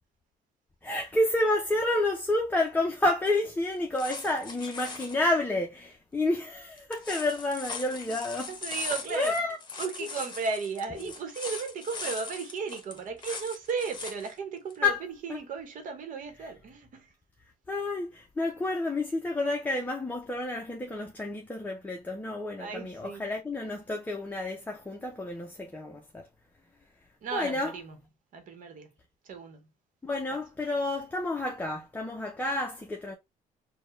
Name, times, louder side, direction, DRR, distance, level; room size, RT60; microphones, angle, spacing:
voice 1, 0.8-8.5 9.1-9.6 10.0-10.1 11.0-11.1 14.8-15.0 15.3-15.4 17.7-26.3 27.3-27.7 30.0-33.1, left 2 dB, 10° left, 0.8 m, -30 dB
sound 1, 3.7-5.2 6.8-14.3 14.7-14.8, left 4 dB, 30° left, 1.2 m, -40 dB
voice 2, 8.5-9.4 9.8-17.1 22.6-23.2 27.2-28.0 28.3-28.9 29.2-29.7, right 5 dB, 60° right, 1.1 m, -35 dB
4.5 x 2.3 x 3.2 m
cardioid pair, 105°, 15 cm